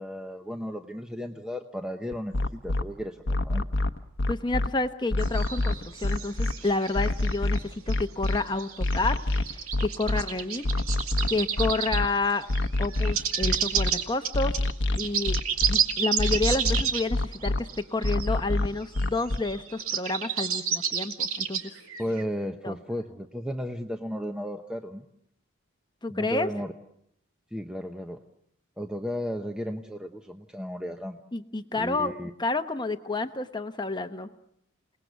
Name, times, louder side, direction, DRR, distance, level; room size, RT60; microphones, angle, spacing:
voice 1, 0.0-3.7 22.0-25.1 26.1-26.7 27.5-28.2 28.8-31.2 31.8-32.3, equal, 5° right, 4 dB, 0.9 m, -34 dB
sound 1, 2.1-2.8 3.3-4.7 5.1-6.5 7.0-8.4 8.8-10.2 10.6-12.1 12.5-13.9 14.3-15.8 16.2-17.6 18.0-19.4, left 2 dB, 60° left, 1.0 m, -26 dB
voice 2, 4.3-9.2 9.5-10.6 11.3-12.5 12.8-14.6 15.0-15.4 15.7-21.7 22.6-22.8 26.0-26.5 31.3-34.3, left 3 dB, 20° left, 8 dB, 1.0 m, -29 dB
sound 2, 5.2-7.6 7.9-12.1 12.4-18.3 18.5-18.6 18.8-22.2, right 7 dB, 85° right, 2.3 m, -31 dB
28.5 x 19.0 x 8.0 m, 0.77 s
head